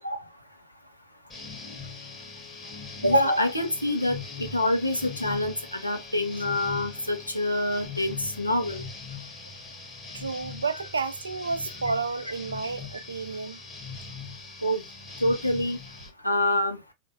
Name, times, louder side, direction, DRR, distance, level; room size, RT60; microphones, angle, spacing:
sound 1, 1.3-16.1, left 4 dB, 20° left, 1.1 m, -41 dB
voice 1, 3.0-8.8 14.6-14.8 15.2-15.8 16.2-16.8, left 1 dB, 85° left, 0.8 m, -26 dB
voice 2, 10.1-13.6, right 4 dB, 75° right, 0.4 m, -31 dB
3.6 x 2.6 x 2.8 m
figure-of-eight pair, 90°, 0 cm